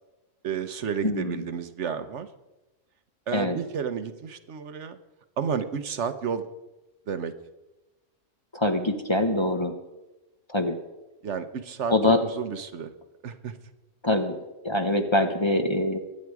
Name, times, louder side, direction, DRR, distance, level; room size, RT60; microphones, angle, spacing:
voice 1, 0.4-2.3 3.3-5.0 5.4-6.5 7.1-7.3 11.2-11.9 12.4-12.9 13.2-13.6, right 7 dB, 65° right, 10 dB, 1.2 m, -31 dB
voice 2, 1.0-1.5 3.3-3.6 8.5-9.7 10.5-10.8 11.9-12.2 14.0-14.4 14.6-16.0, left 1 dB, 25° left, 6 dB, 0.9 m, -24 dB
23.0 x 8.7 x 4.8 m, 1.0 s
omnidirectional pair, 1.3 m